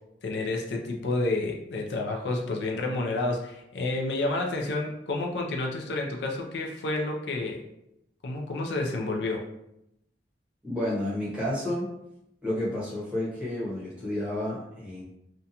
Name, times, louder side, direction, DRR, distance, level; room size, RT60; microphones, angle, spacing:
voice 1, 0.2-7.6 8.2-9.5, left 2 dB, 75° left, 1 dB, 0.4 m, -30 dB
voice 2, 10.6-11.9 12.4-15.0, left 1 dB, 5° right, -8 dB, 0.8 m, -30 dB
2.5 x 2.2 x 2.7 m, 0.83 s
head